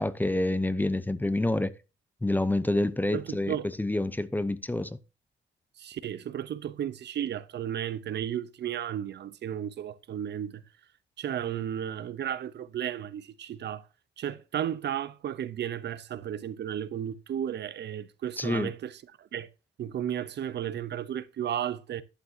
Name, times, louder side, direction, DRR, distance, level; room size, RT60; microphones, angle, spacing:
voice 1, 0.0-1.7 2.2-5.0 18.4-18.7, left 1 dB, 10° left, 0.7 m, -28 dB
voice 2, 3.1-3.7 5.8-10.6 11.2-13.8 14.2-19.5 19.8-22.0, right 10 dB, 60° right, 0.8 m, -34 dB
11.5 x 8.5 x 2.8 m
cardioid pair, 90°, 20 cm